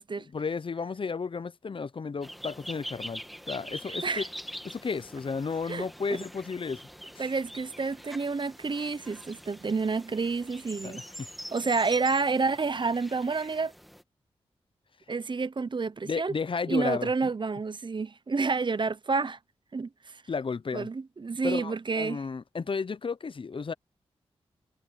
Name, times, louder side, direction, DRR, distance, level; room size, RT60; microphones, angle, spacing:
voice 1, 0.3-4.2 4.6-6.8 7.2-7.3 10.8-11.3 16.0-17.3 20.3-20.9 21.4-23.7, left 5 dB, 50° left, 0.7 m, -33 dB
sound 1, 2.2-14.0, equal, ahead, 2.1 m, -44 dB
voice 2, 3.9-4.2 5.7-6.2 7.2-11.0 11.5-13.7 15.1-16.3 16.7-19.4 19.7-20.2 20.7-22.2, right 4 dB, 45° right, 0.8 m, -29 dB
cardioid pair, 45°, 11 cm